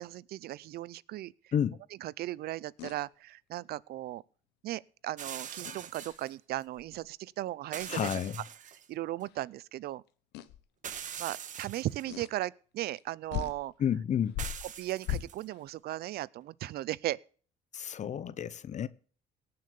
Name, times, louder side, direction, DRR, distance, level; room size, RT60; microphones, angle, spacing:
voice 1, 0.0-1.5 2.0-4.2 4.6-8.1 8.9-10.0 11.2-13.7 14.8-17.2, right 15 dB, 70° right, 0.6 m, -37 dB
sound 1, 2.8-3.0 5.6-6.3 6.8-7.1 7.8-8.2 9.3-9.4 10.3-10.6 12.1-12.3 13.0-13.1 13.3-13.6 14.3-15.6, left 12 dB, 85° left, 1.0 m, -39 dB
sound 2, 5.2-6.3 7.7-8.9 9.2-9.3 10.8-12.1 14.4-15.4, right 8 dB, 50° right, 1.4 m, -43 dB
voice 2, 7.9-8.4 13.8-14.4 17.7-18.9, left 9 dB, 45° left, 0.8 m, -31 dB
18.5 x 6.8 x 6.9 m
cardioid pair, 110°, 17 cm